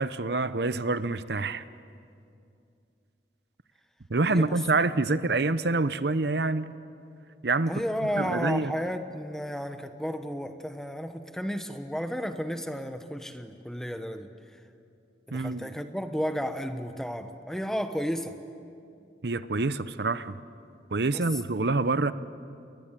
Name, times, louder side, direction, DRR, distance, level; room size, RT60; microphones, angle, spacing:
voice 1, 0.0-1.6 4.1-6.7 7.4-7.7 8.0-8.7 15.3-15.7 19.2-20.4 20.9-22.1, right 3 dB, 70° right, 14 dB, 0.8 m, -26 dB
voice 2, 4.2-4.6 5.1-5.4 7.6-14.3 15.3-18.4 21.1-21.2, equal, 5° left, 7 dB, 1.1 m, -33 dB
28.5 x 22.0 x 9.1 m, 2.5 s
head